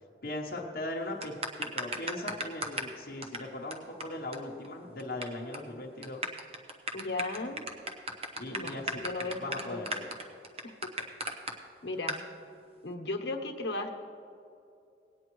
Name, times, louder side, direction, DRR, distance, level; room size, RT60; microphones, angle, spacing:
voice 1, 0.2-6.3 8.4-9.0 9.4-10.1, left 1 dB, 55° left, -2 dB, 1.0 m, -39 dB
sound 1, 1.2-2.9 3.2-3.4 3.7-3.8 4.0-4.1 4.3-4.4 4.6-5.2 5.5-5.7 6.0-11.5 12.1-12.2, right 1 dB, 35° right, 0.9 m, -35 dB
voice 2, 6.9-7.6 8.5-8.8 9.0-9.8 10.6-10.9 11.8-12.2 12.8-13.9, left 2 dB, 75° left, 3 dB, 1.1 m, -36 dB
18.0 x 9.5 x 3.1 m, 2.5 s
head